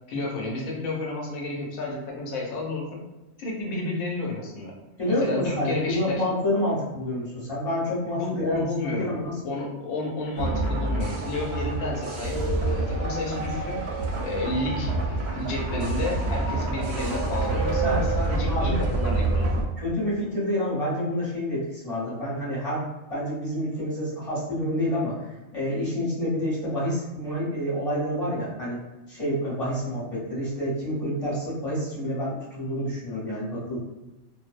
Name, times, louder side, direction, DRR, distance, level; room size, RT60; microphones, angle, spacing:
voice 1, 0.1-3.0 3.4-4.7 5.0-6.2 8.1-9.2 9.4-13.8 14.2-19.5, left 2 dB, 80° left, -1 dB, 1.0 m, -31 dB
voice 2, 5.0-9.4 17.8-18.0 18.5-18.8 19.8-22.8 23.1-25.3 25.5-28.8 29.1-33.8, equal, 30° left, -9 dB, 0.9 m, -28 dB
sound 1, 10.4-19.6, right 2 dB, 65° right, 0.7 m, -27 dB
2.5 x 2.0 x 2.4 m, 1.0 s
omnidirectional pair, 1.5 m